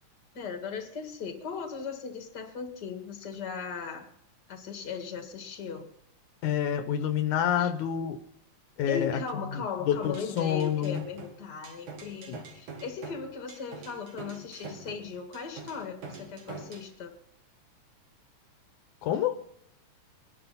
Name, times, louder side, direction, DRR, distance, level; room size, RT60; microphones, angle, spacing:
voice 1, 0.3-4.1 4.5-5.9 7.6-7.7 8.9-17.2, left 6 dB, 35° left, 2.2 m, -38 dB
voice 2, 6.4-8.2 8.8-9.2 9.5-11.0 12.3-12.4 19.0-19.4, left 9 dB, 80° left, 2.3 m, -28 dB
sound 1, 10.0-16.9, right 4 dB, 75° right, 3.8 m, -45 dB
25.0 x 10.5 x 4.2 m
omnidirectional pair, 3.5 m